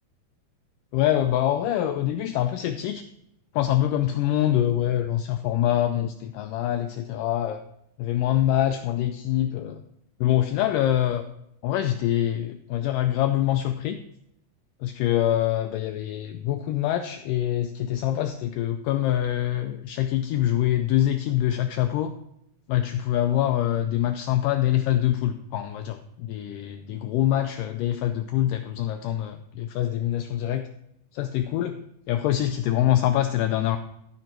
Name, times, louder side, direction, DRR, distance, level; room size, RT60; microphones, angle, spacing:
voice 1, 0.9-3.0 3.5-7.6 8.0-9.8 10.2-11.2 11.6-14.0 14.8-22.1 22.7-30.7 31.1-31.8 32.1-33.8, left 12 dB, 85° left, 7 dB, 1.9 m, -25 dB
13.5 x 5.6 x 4.5 m, 0.79 s
omnidirectional pair, 4.4 m